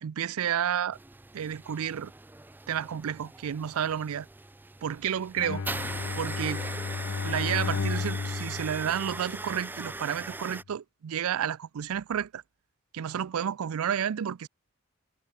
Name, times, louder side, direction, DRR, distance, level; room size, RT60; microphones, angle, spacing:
voice 1, 0.0-1.0 1.3-2.1 2.7-4.3 4.8-5.6 6.2-6.7 7.2-12.4 12.9-14.5, right 9 dB, 80° right, 0.4 m, -31 dB
sound 1, 0.9-10.6, right 2 dB, 10° right, 0.3 m, -40 dB
Bowed string instrument, 5.4-9.8, left 5 dB, 65° left, 0.5 m, -33 dB
head